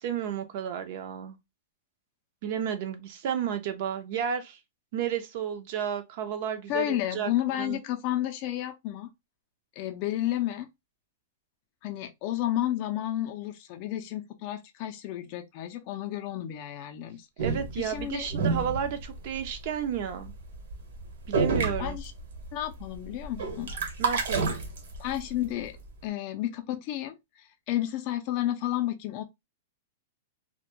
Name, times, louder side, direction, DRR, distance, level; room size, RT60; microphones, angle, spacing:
voice 1, 0.0-1.4 2.4-4.6 4.9-7.3 7.6-7.8 17.4-20.3 21.3-22.0 24.0-24.5, right 8 dB, 50° right, 0.5 m, -32 dB
voice 2, 6.7-9.1 9.8-10.7 11.8-17.3 17.8-18.3 21.8-22.1 22.5-23.7 25.0-25.7 26.0-29.2, left 13 dB, 40° left, 0.4 m, -31 dB
sound 1, 17.4-19.6 20.0-20.3 20.5-20.7 21.0-21.1 21.3-22.5 22.8-25.2, right 4 dB, 70° right, 1.0 m, -29 dB
2.1 x 2.0 x 2.9 m
hypercardioid pair, 150°, 0 cm